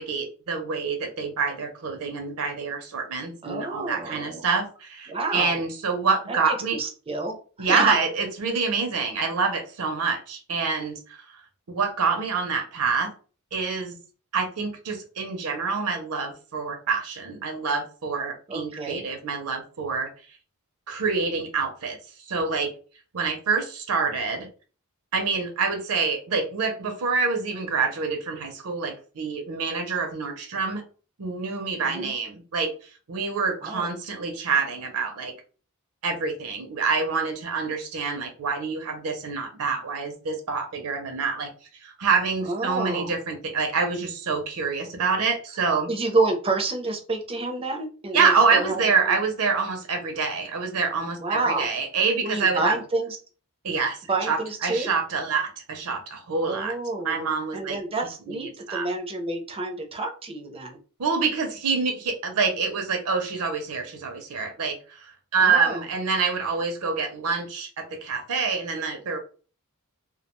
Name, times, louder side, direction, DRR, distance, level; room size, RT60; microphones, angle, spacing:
voice 1, 0.0-6.8 7.6-11.4 11.7-13.1 13.5-14.0 14.3-20.1 20.9-22.0 22.3-22.7 23.1-24.5 25.1-30.8 31.2-32.7 33.1-35.3 36.0-41.5 41.8-45.9 48.1-52.8 53.6-54.0 54.3-56.7 57.0-57.8 58.3-58.9 61.0-69.2, right 5 dB, 75° right, 5 dB, 0.6 m, -26 dB
voice 2, 3.4-4.4 5.1-5.6 6.3-6.4 6.7-7.9 18.5-19.1 31.8-32.1 33.6-33.9 42.4-43.2 45.9-48.8 49.0-49.1 51.2-51.7 52.2-53.2 54.1-54.9 56.4-57.1 57.5-60.8 65.4-65.8, right 2 dB, 25° right, 4 dB, 0.5 m, -28 dB
2.3 x 2.2 x 2.9 m, 0.38 s
head